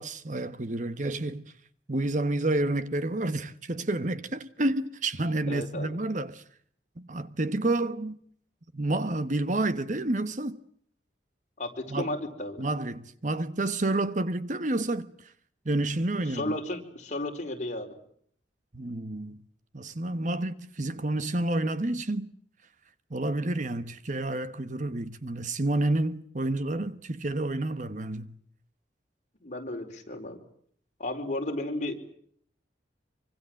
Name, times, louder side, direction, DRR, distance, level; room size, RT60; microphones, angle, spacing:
voice 1, 0.0-1.5 1.9-6.4 7.0-8.2 8.7-10.6 11.9-12.1 12.6-15.1 15.6-16.5 18.7-19.4 19.7-22.3 23.1-28.3, right 2 dB, 45° right, 1.2 m, -29 dB
voice 2, 5.5-6.0 11.6-12.6 16.2-17.9 29.4-30.4 31.0-32.0, left 1 dB, 40° left, 4.6 m, -33 dB
26.5 x 25.0 x 7.8 m
head